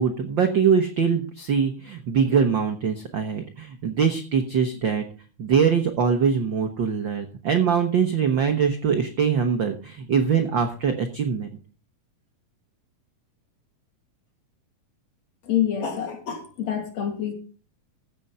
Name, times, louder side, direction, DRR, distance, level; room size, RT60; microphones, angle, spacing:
voice 1, 0.0-5.0 5.4-11.5, right 6 dB, 70° right, 7 dB, 1.1 m, -23 dB
voice 2, 15.5-17.3, left 9 dB, 55° left, 5 dB, 3.4 m, -27 dB
15.5 x 6.9 x 5.5 m, 0.38 s
omnidirectional pair, 3.8 m